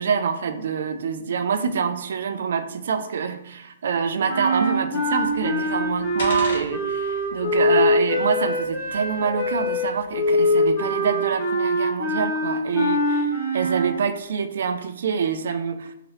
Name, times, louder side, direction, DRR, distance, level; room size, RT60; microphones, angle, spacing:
voice 1, 0.0-15.9, right 6 dB, 55° right, 9 dB, 0.3 m, -26 dB
sound 1, 4.3-13.9, left 1 dB, 45° left, 1.3 m, -23 dB
sound 2, 5.0-10.5, left 1 dB, 60° left, 1.2 m, -40 dB
2.8 x 2.8 x 3.0 m, 0.80 s
hypercardioid pair, 180°, 0 cm